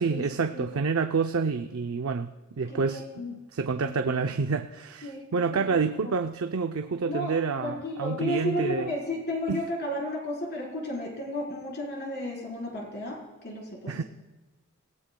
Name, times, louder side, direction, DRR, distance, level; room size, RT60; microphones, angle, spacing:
voice 1, 0.0-2.3 2.6-3.0 3.3-8.9 9.5-9.6 13.9-14.0, right 5 dB, 75° right, 6 dB, 0.5 m, -28 dB
voice 2, 2.7-3.3 3.8-4.2 5.0-5.2 5.5-6.1 7.0-7.3 7.6-14.0, left 1 dB, 50° left, -1 dB, 4.1 m, -33 dB
30.0 x 17.0 x 2.2 m, 1.2 s
head